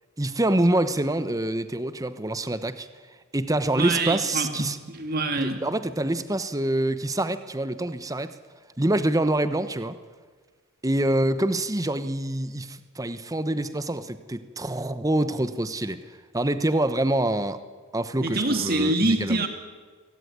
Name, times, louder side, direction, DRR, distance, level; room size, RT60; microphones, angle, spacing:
voice 1, 0.2-2.9 3.3-4.8 5.4-8.3 8.8-10.0 10.8-16.0 16.3-17.6 17.9-19.4, right 1 dB, 15° right, 12 dB, 1.0 m, -26 dB
voice 2, 3.8-5.6 18.2-19.5, right 2 dB, 45° right, 6 dB, 2.5 m, -25 dB
23.0 x 18.0 x 9.5 m, 1.5 s
head